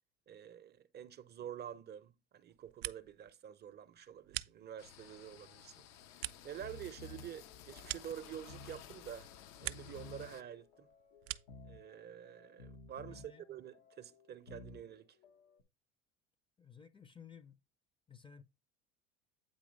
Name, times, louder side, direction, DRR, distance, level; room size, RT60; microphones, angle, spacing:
voice 1, 0.3-5.8 6.4-9.3 9.6-10.9 11.6-15.2, right 9 dB, 35° right, 0.6 m, -48 dB
sound 1, 2.5-3.3 3.6-5.1 5.5-8.8 9.1-10.1 10.4-11.7, right 18 dB, 85° right, 0.5 m, -46 dB
sound 2, 4.8-10.4, left 10 dB, 60° left, 0.7 m, -55 dB
sound 3, 6.5-15.6, left 2 dB, 85° left, 1.1 m, -56 dB
voice 2, 13.0-13.4 16.6-17.6 18.1-18.4, left 7 dB, 15° left, 0.5 m, -55 dB
8.7 x 3.0 x 5.2 m
supercardioid pair, 105°, 29 cm